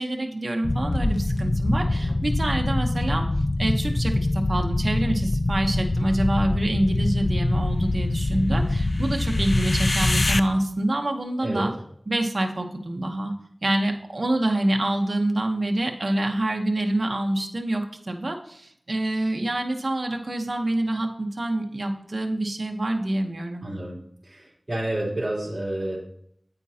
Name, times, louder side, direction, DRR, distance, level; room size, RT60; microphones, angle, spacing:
voice 1, 0.0-3.3 3.6-11.7 12.1-13.3 13.6-23.7, right 1 dB, 55° right, 3 dB, 0.9 m, -26 dB
sound 1, 0.6-10.4, left 2 dB, 50° left, 0.4 m, -24 dB
sound 2, 0.9-2.6, left 1 dB, 75° left, 1.3 m, -45 dB
voice 2, 23.6-24.0 24.2-26.0, right 1 dB, 35° right, -6 dB, 3.2 m, -29 dB
9.0 x 8.4 x 2.8 m, 0.68 s
wide cardioid pair, 55°, 0 cm